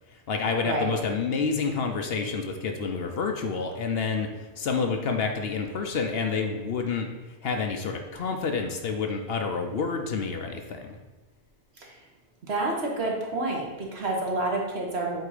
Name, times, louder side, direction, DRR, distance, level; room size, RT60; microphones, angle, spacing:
voice 1, 0.3-4.3 4.6-7.1 7.4-11.0, left 5 dB, 60° left, 4 dB, 0.8 m, -28 dB
voice 2, 12.5-15.2, right 2 dB, 60° right, -1 dB, 1.4 m, -29 dB
8.0 x 2.8 x 4.9 m, 1.2 s
omnidirectional pair, 1.2 m